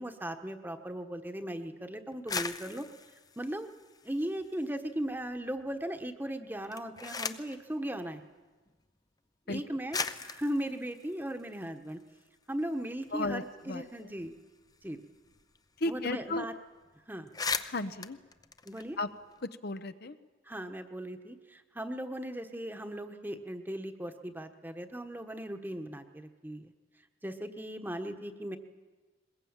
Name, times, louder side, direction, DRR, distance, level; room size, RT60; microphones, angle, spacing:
voice 1, 0.0-2.9 3.4-3.7 4.0-8.2 9.5-12.0 12.5-14.3 14.8-15.0 15.9-16.5 17.1-17.3 18.6-19.0 20.5-26.7 27.2-28.6, right 1 dB, 10° right, 7 dB, 1.3 m, -37 dB
sound 1, 2.1-4.7 5.1-5.7 6.5-7.6 8.7-8.8 9.5-9.6 9.9-12.2 12.6-12.7 12.9-15.6 15.8-15.9 16.2-16.5 16.8-16.9 17.2-19.4, left 5 dB, 20° left, 0.7 m, -39 dB
voice 2, 13.1-14.1 15.8-16.5 17.6-18.2 19.0-19.1 19.6-20.2, left 2 dB, 50° left, 10 dB, 0.9 m, -34 dB
22.0 x 21.0 x 8.9 m, 1.3 s
head